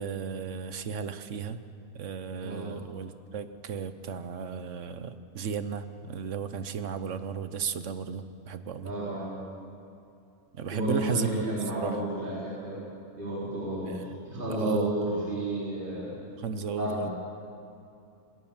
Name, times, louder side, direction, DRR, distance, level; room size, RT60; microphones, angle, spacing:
voice 1, 0.0-1.6 1.9-8.9 10.6-11.5 11.7-12.0 13.8-14.9 16.4-17.1, right 6 dB, 55° right, 11 dB, 1.1 m, -34 dB
voice 2, 2.4-2.7 8.8-9.3 10.7-12.8 13.2-16.2 16.8-17.1, right 1 dB, 30° right, -8 dB, 4.6 m, -32 dB
20.5 x 18.0 x 7.3 m, 2.6 s
omnidirectional pair, 1.6 m